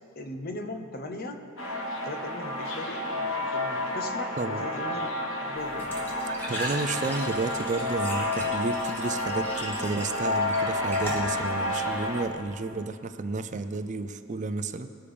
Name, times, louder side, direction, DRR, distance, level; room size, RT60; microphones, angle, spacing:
voice 1, 0.1-1.4 2.0-5.9, left 2 dB, 50° left, 6 dB, 1.0 m, -38 dB
sound 1, 1.6-12.2, left 1 dB, 70° left, 1.2 m, -30 dB
Glass / Trickle dribble / Fill (with liquid), 5.6-12.3, right 1 dB, 10° left, 2.1 m, -39 dB
voice 2, 6.5-14.9, right 3 dB, 35° right, 10 dB, 0.4 m, -31 dB
20.5 x 7.0 x 5.0 m, 2.9 s
head